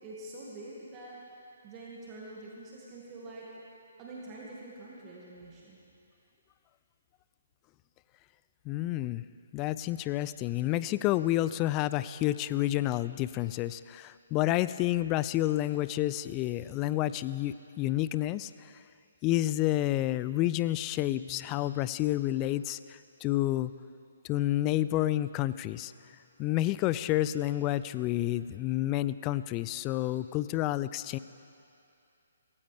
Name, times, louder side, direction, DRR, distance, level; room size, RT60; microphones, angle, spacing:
voice 1, 0.0-3.6 4.0-5.8, right 2 dB, 25° right, -5 dB, 2.0 m, -46 dB
voice 2, 8.7-9.2 9.5-18.7 19.2-23.7 24.2-25.9 26.4-31.2, left 15 dB, 25° left, 15 dB, 0.3 m, -29 dB
17.5 x 15.5 x 3.4 m, 2.6 s
figure-of-eight pair, 135°, 0 cm